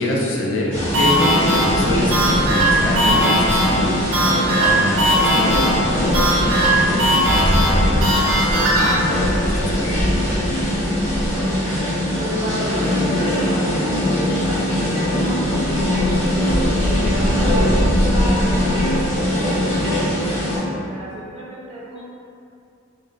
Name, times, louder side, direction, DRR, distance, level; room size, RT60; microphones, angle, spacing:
voice 1, 0.0-4.0 4.6-10.0 16.9-17.4, left 1 dB, 70° left, -3 dB, 0.5 m, -26 dB
sound 1, 0.7-20.6, left 1 dB, 30° left, 1.1 m, -20 dB
sound 2, 0.9-8.9, right 1 dB, 90° right, 0.8 m, -19 dB
voice 2, 12.1-16.3 16.6-22.0, equal, 30° right, -5 dB, 0.4 m, -32 dB
2.6 x 2.1 x 3.7 m, 2.5 s
head